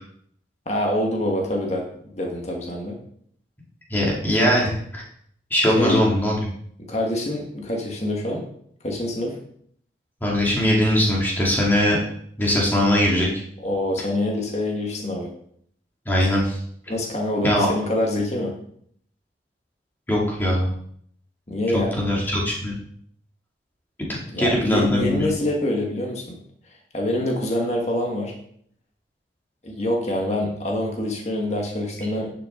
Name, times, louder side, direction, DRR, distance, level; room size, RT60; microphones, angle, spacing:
voice 1, 0.6-1.9 2.1-3.0 5.8-6.0 6.9-8.4 8.8-9.4 13.6-15.3 16.9-18.5 21.5-22.0 24.3-26.4 26.9-28.3 29.6-32.3, left 1 dB, 35° left, 0 dB, 1.7 m, -25 dB
voice 2, 3.9-5.0 5.5-6.5 10.2-12.0 12.4-13.3 16.1-16.6 17.4-17.7 20.1-20.7 21.7-22.7 24.4-25.3, left 1 dB, 10° left, -4 dB, 2.5 m, -21 dB
10.5 x 6.6 x 3.8 m, 0.65 s
head